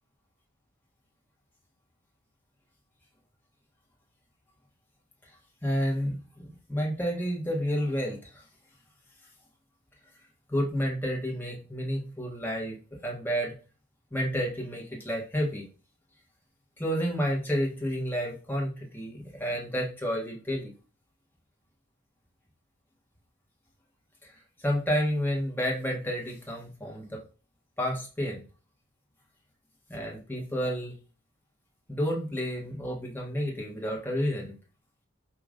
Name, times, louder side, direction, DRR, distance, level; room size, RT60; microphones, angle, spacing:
voice 1, 5.6-8.4 10.5-12.8 13.0-13.5 14.1-15.6 16.8-20.7 24.2-24.3 24.6-27.2 27.8-28.4 29.9-30.9 31.9-34.5, equal, 10° left, -2 dB, 1.2 m, -30 dB
4.9 x 2.9 x 3.7 m, 0.36 s
head